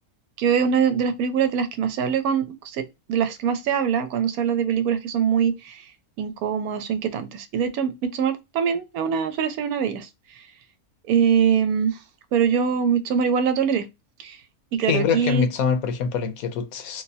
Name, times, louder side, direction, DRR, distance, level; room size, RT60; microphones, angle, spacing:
voice 1, 0.4-2.8 3.1-5.8 6.2-10.1 11.1-12.0 12.3-13.9 14.2-14.4 14.7-15.5, right 7 dB, 80° right, 1.1 m, -23 dB
voice 2, 14.9-17.0, left 6 dB, 75° left, 1.1 m, -24 dB
3.2 x 3.0 x 2.7 m
omnidirectional pair, 1.5 m